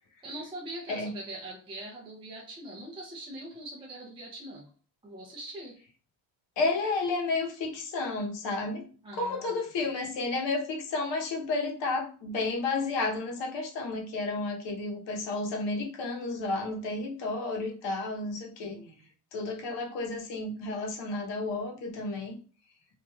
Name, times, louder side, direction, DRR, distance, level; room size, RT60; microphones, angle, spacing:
voice 1, 0.2-4.7 5.0-5.8 9.0-9.5 18.6-19.1, right 1 dB, 10° right, -3 dB, 0.4 m, -42 dB
voice 2, 6.6-8.8 9.1-18.8 19.3-22.4, left 3 dB, 60° left, 1 dB, 0.9 m, -31 dB
3.1 x 2.5 x 2.3 m, 0.40 s
cardioid pair, 140°, 48 cm